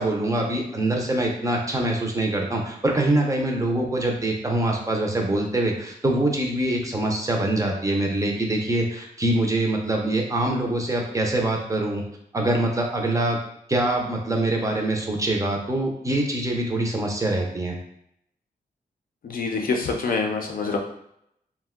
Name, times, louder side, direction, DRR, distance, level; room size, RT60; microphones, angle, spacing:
voice 1, 0.0-12.0 12.3-13.4 13.7-17.8, right 1 dB, 20° right, 0 dB, 0.5 m, -24 dB
voice 2, 19.2-20.8, left 4 dB, 60° left, 2 dB, 0.5 m, -26 dB
2.5 x 2.1 x 3.6 m, 0.74 s
wide cardioid pair, 140°, 16 cm